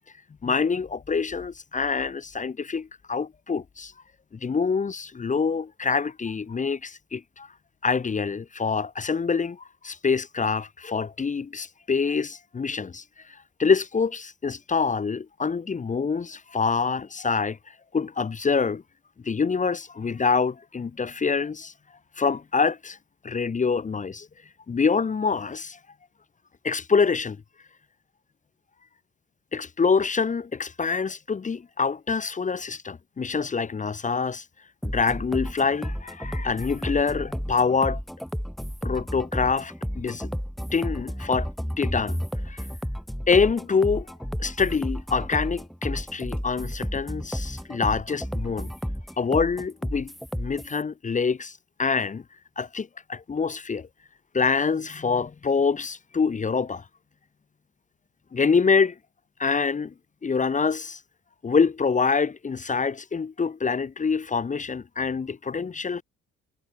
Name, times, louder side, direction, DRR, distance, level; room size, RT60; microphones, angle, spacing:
voice 1, 0.4-3.9 4.4-7.5 7.8-13.0 13.6-17.6 17.9-18.8 19.2-21.7 22.2-23.0 23.2-24.3 24.7-25.8 26.6-27.4 29.5-34.4 34.8-38.0 38.8-40.3 40.7-41.5 41.8-42.2 42.5-42.6 43.3-44.1 44.4-48.7 49.2-51.5 51.8-52.2 52.6-53.9 54.3-56.8 58.3-58.9 59.4-59.9 60.2-61.0 61.4-66.0, left 5 dB, 25° left, 0.7 m, -25 dB
sound 1, 34.8-50.8, equal, ahead, 0.3 m, -32 dB
cardioid pair, 90°, 30 cm